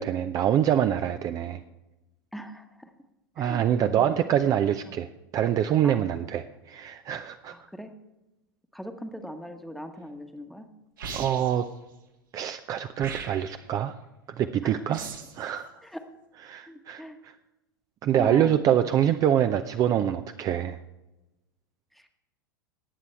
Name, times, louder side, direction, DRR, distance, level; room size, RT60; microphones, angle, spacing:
voice 1, 0.0-1.6 3.4-5.1 5.3-7.5 11.1-11.7 12.3-13.9 14.4-15.0 15.4-15.7 16.5-17.3 18.0-20.8, right 10 dB, 30° right, 9 dB, 0.5 m, -25 dB
voice 2, 2.3-2.9 3.4-3.6 3.9-4.3 4.8-5.0 5.8-5.9 7.5-7.9 8.7-10.7 14.6-15.0 15.8-16.0 16.7-17.2 18.2-18.6 21.9-22.1, equal, ahead, 6 dB, 1.2 m, -40 dB
sound 1, 11.0-11.7 13.0-13.7 14.9-15.4, right 5 dB, 70° right, 2.0 m, -38 dB
19.0 x 8.2 x 3.4 m, 0.98 s
figure-of-eight pair, 90°, 11 cm